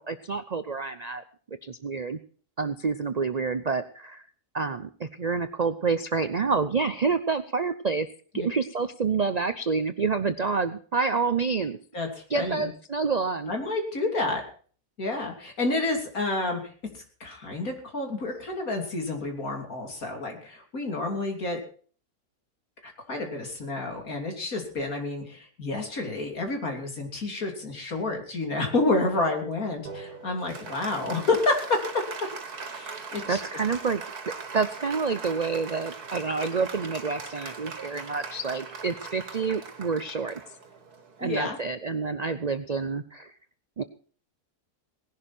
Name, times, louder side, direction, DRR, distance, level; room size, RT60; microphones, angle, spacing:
voice 1, 0.1-1.2 1.6-2.2 2.6-4.2 4.5-8.1 8.3-11.8 12.3-13.5 33.3-34.0 34.5-40.4 41.2-43.3 43.8-43.9, right 4 dB, 55° right, 11 dB, 0.4 m, -28 dB
voice 2, 12.3-12.7 13.5-14.4 15.0-16.6 17.2-21.6 22.8-32.0 32.7-33.4 41.2-41.6, left 2 dB, 65° left, 3 dB, 3.5 m, -29 dB
Applause, 29.9-41.7, right 4 dB, 75° right, 2.2 m, -40 dB
19.0 x 11.5 x 4.4 m, 0.43 s
omnidirectional pair, 1.6 m